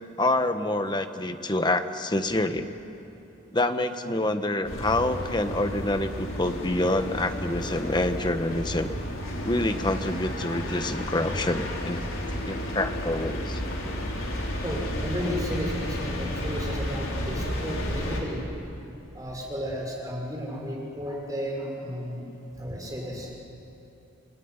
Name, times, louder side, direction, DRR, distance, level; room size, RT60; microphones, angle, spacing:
voice 1, 0.2-2.7 3.5-8.9 9.4-12.0 12.5-13.6, left 1 dB, 20° left, 8 dB, 1.3 m, -27 dB
sound 1, 4.6-18.2, equal, 90° left, 5.1 m, -32 dB
voice 2, 14.6-18.4 19.1-22.2 22.6-23.3, equal, 20° right, -1 dB, 5.9 m, -33 dB
28.5 x 21.0 x 9.8 m, 2.8 s
head